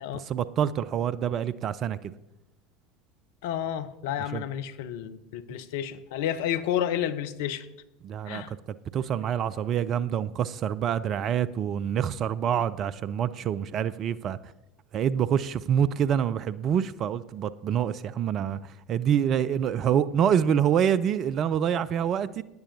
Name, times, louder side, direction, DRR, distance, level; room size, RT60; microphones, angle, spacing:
voice 1, 0.1-2.1 4.3-4.4 8.0-8.6 8.9-14.5 14.9-22.4, right 9 dB, 40° right, 17 dB, 0.4 m, -26 dB
voice 2, 3.4-7.7 8.3-8.5, left 10 dB, 60° left, 12 dB, 0.7 m, -31 dB
17.5 x 9.9 x 2.7 m, 0.91 s
figure-of-eight pair, 75°, 0 cm